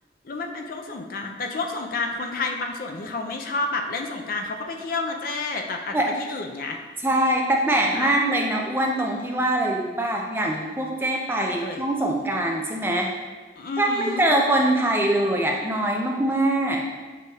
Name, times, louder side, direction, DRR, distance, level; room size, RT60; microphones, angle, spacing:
voice 1, 0.2-6.8 7.9-8.1 11.4-11.8 13.6-14.2, left 3 dB, 50° left, 3 dB, 0.4 m, -30 dB
voice 2, 7.0-13.1 13.8-16.8, right 1 dB, 10° right, 0 dB, 0.4 m, -23 dB
6.6 x 3.4 x 2.4 m, 1.3 s
head